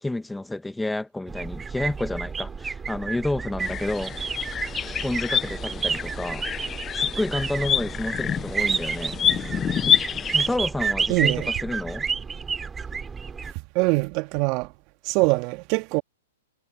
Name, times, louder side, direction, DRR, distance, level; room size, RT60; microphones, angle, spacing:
voice 1, 0.0-4.1 5.0-6.5 6.9-9.2 10.3-12.1, left 2 dB, 5° left, 1.4 m, -30 dB
sound 1, 1.3-13.5, right 5 dB, 15° right, 5.1 m, -30 dB
sound 2, 3.6-10.6, left 8 dB, 20° left, 0.7 m, -27 dB
voice 2, 11.1-11.5 13.8-14.7 15.0-16.0, right 26 dB, 40° right, 1.9 m, -23 dB
hypercardioid pair, 120°, 0 cm